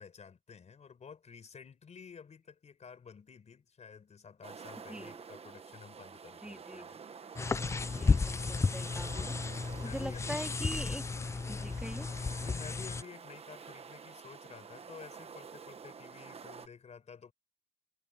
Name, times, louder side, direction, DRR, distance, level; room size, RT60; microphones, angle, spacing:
voice 1, 0.0-7.0 8.9-10.5 12.4-17.3, left 6 dB, 50° left, 4.8 m, -52 dB
sound 1, 4.4-16.7, right 6 dB, 40° right, 1.2 m, -49 dB
voice 2, 4.9-5.2 6.4-6.9 8.0-9.3 9.8-11.0 11.5-12.1, right 1 dB, 5° right, 2.3 m, -42 dB
sound 2, 7.4-13.0, left 4 dB, 20° left, 0.3 m, -33 dB
cardioid pair, 105°, 15 cm